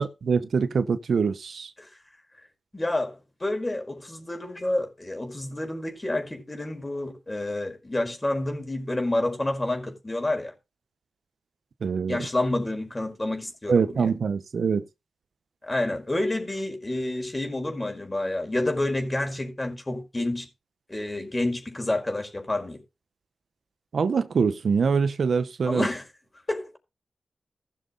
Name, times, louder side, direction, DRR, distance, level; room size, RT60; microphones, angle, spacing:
voice 1, 0.0-1.7 11.8-12.3 13.7-14.8 23.9-25.9, right 5 dB, 75° right, 0.9 m, -24 dB
voice 2, 2.7-10.5 12.1-14.1 15.6-20.5 20.9-22.8 25.6-26.1 26.5-26.7, left 1 dB, 25° left, 4.9 m, -29 dB
17.0 x 6.4 x 3.9 m
cardioid pair, 55°, 0 cm